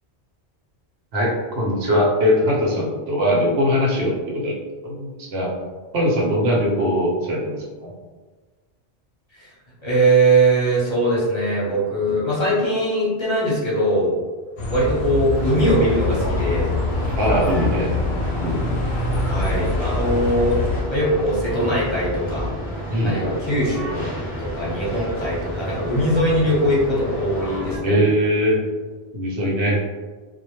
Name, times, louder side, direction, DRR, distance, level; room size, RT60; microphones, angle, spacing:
voice 1, 1.1-4.6 4.8-5.5 5.9-7.9 17.2-17.9 18.4-18.8 22.9-23.2 27.8-28.6 29.1-29.8, equal, 80° right, -3 dB, 0.9 m, -21 dB
voice 2, 9.8-14.1 14.7-16.7 19.2-20.6 20.9-22.5 23.0-28.0, right 1 dB, 30° left, -8 dB, 0.7 m, -21 dB
Bus, 14.6-20.8, left 2 dB, 85° left, 0.9 m, -25 dB
sound 1, 15.3-27.8, equal, 10° right, 0.7 m, -30 dB
2.1 x 2.0 x 3.0 m, 1.4 s
omnidirectional pair, 1.1 m